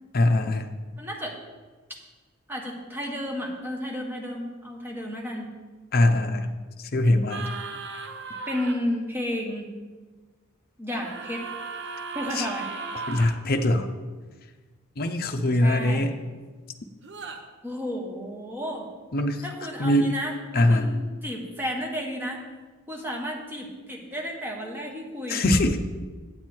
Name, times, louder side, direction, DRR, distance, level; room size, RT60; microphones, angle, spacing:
voice 1, 0.1-0.7 5.9-6.5 6.9-7.4 12.3-12.5 13.1-13.9 15.0-16.2 19.1-19.4 19.8-20.1 20.5-20.9 25.3-25.8, left 1 dB, 45° left, 6 dB, 0.7 m, -22 dB
voice 2, 1.0-1.4 2.5-5.5 8.5-9.7 10.8-11.4 12.1-12.7 15.6-16.1 17.6-18.9 19.4-22.4 22.9-25.4, equal, 10° right, 0 dB, 1.3 m, -32 dB
sound 1, 7.3-8.7 10.9-13.3 17.0-17.4, right 4 dB, 55° right, 0.8 m, -36 dB
8.6 x 8.0 x 4.4 m, 1.4 s
head